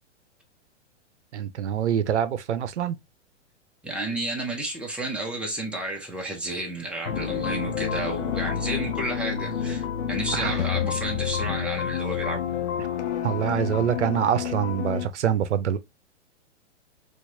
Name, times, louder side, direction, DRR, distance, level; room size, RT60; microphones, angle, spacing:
voice 1, 1.3-3.0 10.3-10.6 13.2-15.8, right 9 dB, 75° right, 0.7 m, -25 dB
voice 2, 3.8-12.5, right 1 dB, 5° right, 1.0 m, -32 dB
sound 1, 7.1-15.1, left 8 dB, 70° left, 0.8 m, -29 dB
4.4 x 2.5 x 2.7 m
hypercardioid pair, 120°, 35 cm